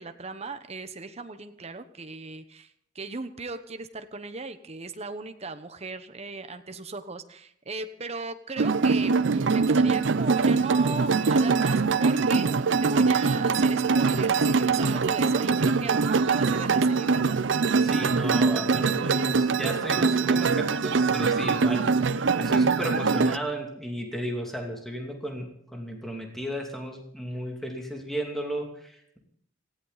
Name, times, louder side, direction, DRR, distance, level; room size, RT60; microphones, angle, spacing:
voice 1, 0.0-12.5 12.8-17.4, right 3 dB, 35° right, 9 dB, 1.0 m, -37 dB
sound 1, 8.6-23.4, right 4 dB, 70° right, 0.6 m, -23 dB
voice 2, 17.8-29.2, equal, ahead, 1 dB, 2.7 m, -34 dB
18.5 x 16.0 x 4.1 m, 0.71 s
head